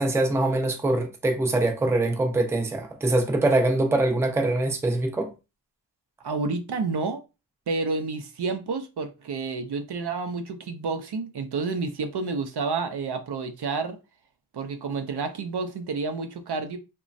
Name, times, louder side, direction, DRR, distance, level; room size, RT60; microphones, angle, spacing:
voice 1, 0.0-5.3, right 2 dB, 5° right, 0.4 m, -23 dB
voice 2, 6.2-7.2 7.7-14.0 14.5-16.8, right 4 dB, 60° right, 0.5 m, -30 dB
3.0 x 2.2 x 2.5 m
wide cardioid pair, 80°, 45 cm